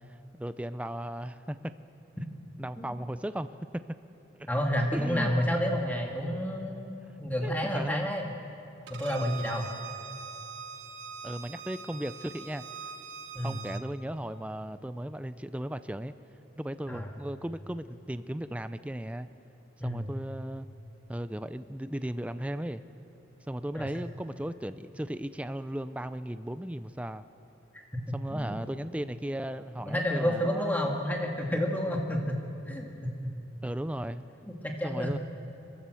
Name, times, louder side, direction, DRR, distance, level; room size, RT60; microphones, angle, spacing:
voice 1, 0.1-1.7 2.6-4.0 4.4-4.5 4.9-5.4 7.4-8.1 11.2-12.6 13.4-16.1 16.6-19.3 19.8-20.7 21.1-22.8 23.5-27.2 28.1-30.7 33.6-34.2 34.8-35.2, right 1 dB, 5° right, 12 dB, 0.4 m, -36 dB
voice 2, 4.5-8.3 8.9-9.7 13.3-13.6 16.9-17.1 19.8-20.1 23.7-23.9 28.3-28.5 29.8-32.3 32.7-33.3 34.6-35.1, equal, 10° left, 1 dB, 1.7 m, -30 dB
Bowed string instrument, 8.9-13.8, right 5 dB, 65° right, 1.1 m, -43 dB
29.0 x 13.0 x 7.7 m, 3.0 s
head